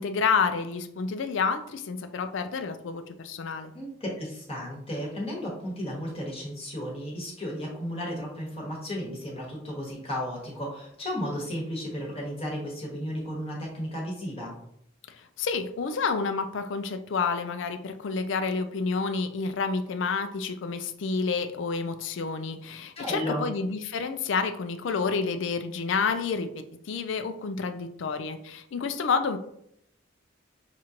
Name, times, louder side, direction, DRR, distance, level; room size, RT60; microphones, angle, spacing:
voice 1, 0.0-3.7 15.1-29.4, left 5 dB, 70° left, 8 dB, 0.4 m, -29 dB
voice 2, 3.7-14.5 23.0-23.5, equal, 30° left, -3 dB, 1.3 m, -34 dB
5.9 x 2.5 x 2.8 m, 0.73 s
head